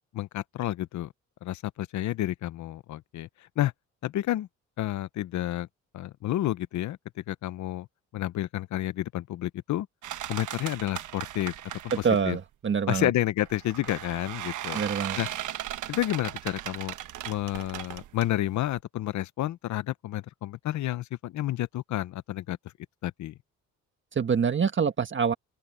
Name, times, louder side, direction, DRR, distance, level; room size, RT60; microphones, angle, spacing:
voice 1, 0.1-1.1 1.4-3.3 3.6-3.7 4.0-4.5 4.8-5.7 5.9-7.0 7.3-7.9 8.1-9.9 10.3-11.5 12.3-12.4 12.9-14.8 15.2-15.3 15.9-16.9 17.2-22.6 23.0-23.3, left 14 dB, 70° left, 0.8 m, -30 dB
sound 1, 10.0-12.4 13.4-18.8, right 12 dB, 80° right, 1.3 m, -37 dB
voice 2, 11.9-13.1 14.7-15.2 24.1-25.3, right 6 dB, 40° right, 1.6 m, -26 dB
open air
cardioid pair, 90°, 30 cm